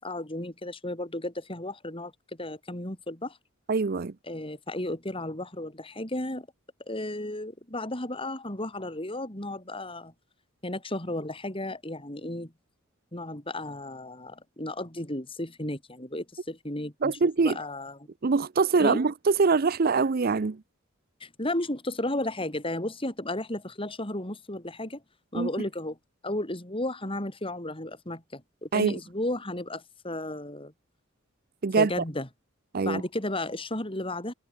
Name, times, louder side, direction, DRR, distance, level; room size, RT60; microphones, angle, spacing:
voice 1, 0.0-2.1 2.4-3.4 4.3-6.5 6.9-10.1 10.6-12.5 13.1-17.2 17.4-18.1 18.8-19.0 21.2-25.0 25.3-26.0 26.2-30.7 31.8-32.3 32.8-34.3, left 1 dB, 25° left, 4.6 m, -34 dB
voice 2, 3.7-4.1 17.0-17.6 18.2-20.6 25.3-25.5 28.7-29.0 31.6-31.9 32.7-33.0, right 4 dB, 45° right, 0.5 m, -23 dB
head